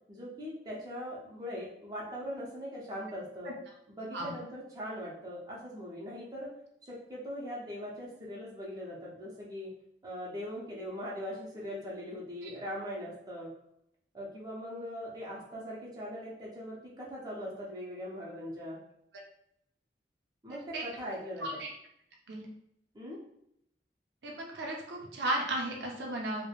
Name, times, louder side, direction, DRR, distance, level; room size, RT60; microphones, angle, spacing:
voice 1, 0.1-3.5 3.9-6.5 6.8-9.7 10.0-13.5 14.1-18.8 20.4-21.6 22.9-23.2, equal, 20° right, -5 dB, 0.6 m, -41 dB
voice 2, 20.5-20.8 21.4-21.7 22.3-22.5 24.2-26.4, right 1 dB, 75° right, -1 dB, 0.6 m, -35 dB
3.0 x 2.1 x 2.4 m, 0.75 s
head